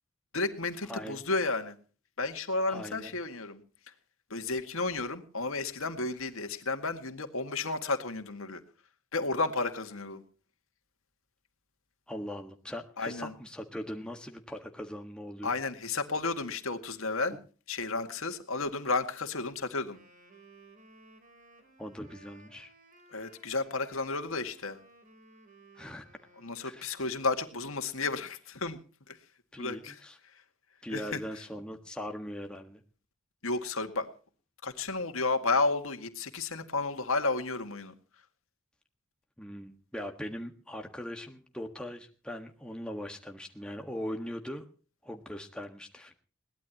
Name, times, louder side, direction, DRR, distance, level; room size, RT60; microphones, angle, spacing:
voice 1, 0.3-1.8 2.2-3.6 4.3-8.6 9.1-10.2 13.0-13.3 15.4-17.4 17.7-20.0 23.1-24.8 26.4-28.8 29.1-29.2 29.6-30.0 30.9-31.2 33.4-34.1 34.6-37.9, left 3 dB, 75° left, 7 dB, 2.0 m, -32 dB
voice 2, 0.9-1.2 2.7-3.1 12.1-15.5 21.8-22.7 25.8-26.0 26.6-26.9 29.5-30.2 30.8-32.8 39.4-44.6 45.0-46.1, equal, 5° left, 3 dB, 1.5 m, -40 dB
Wind instrument woodwind instrument, 19.8-27.5, right 2 dB, 35° right, 3.9 m, -58 dB
21.5 x 18.0 x 3.0 m, 0.38 s
head